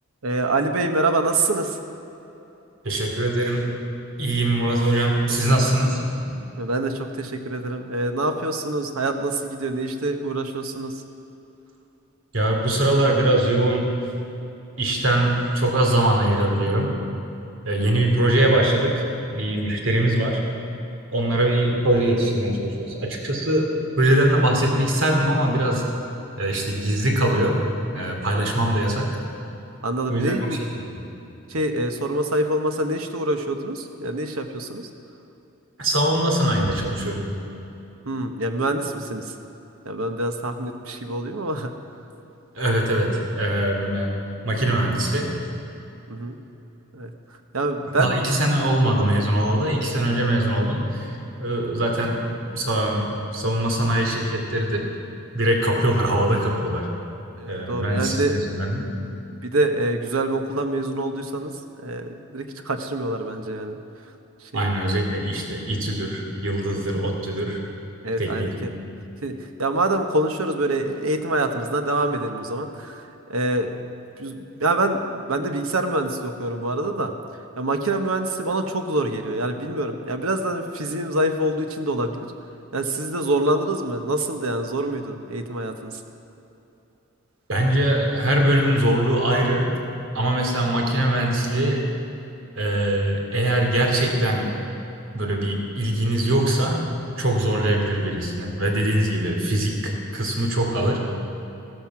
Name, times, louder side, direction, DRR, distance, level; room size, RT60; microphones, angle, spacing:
voice 1, 0.2-1.8 6.6-10.9 29.8-30.6 31.5-34.9 38.1-39.2 39.8-41.7 46.1-46.4 46.9-47.1 47.5-48.2 57.4-58.3 59.3-61.5 61.8-63.8 64.5-64.7 68.0-68.7 69.2-73.0 73.3-73.7 74.2-77.1 77.6-82.3 82.7-85.9, right 2 dB, 90° right, 6 dB, 1.2 m, -25 dB
voice 2, 2.8-3.8 4.2-6.0 6.3-6.4 12.3-14.0 14.8-16.9 17.6-19.1 19.3-20.4 21.1-25.9 26.4-27.7 27.9-29.2 30.1-31.0 35.8-37.3 42.5-44.2 44.4-45.3 48.0-52.3 52.5-54.9 55.3-56.9 57.5-59.1 64.5-67.6 68.2-68.6 87.5-89.7 90.1-91.8 92.5-94.6 95.1-96.9 97.2-101.0, right 1 dB, 70° right, 0 dB, 2.6 m, -22 dB
15.0 x 13.5 x 6.0 m, 3.0 s
head